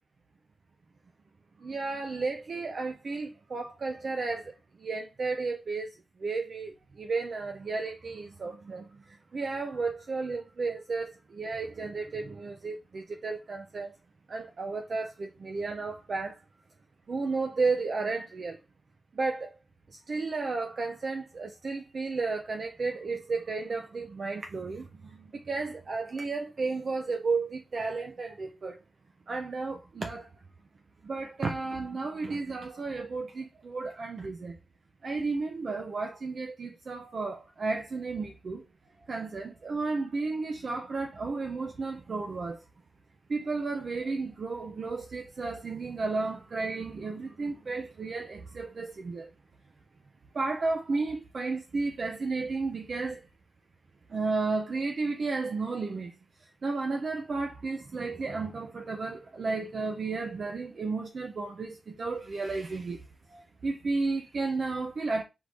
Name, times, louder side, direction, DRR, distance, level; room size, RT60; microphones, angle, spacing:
voice 1, 1.6-5.9 6.2-13.9 14.3-16.4 17.1-18.6 19.2-19.5 19.9-28.8 29.3-30.3 31.0-34.6 35.0-38.6 39.1-42.6 43.3-49.3 50.3-53.2 54.1-56.1 56.6-63.0 63.3-65.2, right 3 dB, 50° right, 0.5 m, -33 dB
4.8 x 2.6 x 3.4 m
wide cardioid pair, 145°, 0 cm